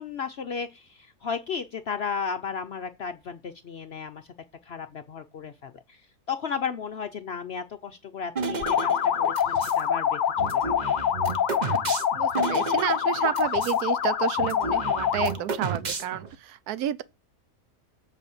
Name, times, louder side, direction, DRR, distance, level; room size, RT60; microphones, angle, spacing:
voice 1, 0.0-4.3 4.6-6.0 6.3-10.8, left 6 dB, 60° left, 0.7 m, -34 dB
sound 1, 8.4-9.8 10.4-13.8 14.1-14.2 14.4-16.4, right 4 dB, 35° right, 0.8 m, -32 dB
sound 2, 8.6-15.4, left 9 dB, 90° left, 0.4 m, -25 dB
voice 2, 12.2-17.0, right 11 dB, 85° right, 1.1 m, -30 dB
8.1 x 4.2 x 6.9 m
omnidirectional pair, 1.6 m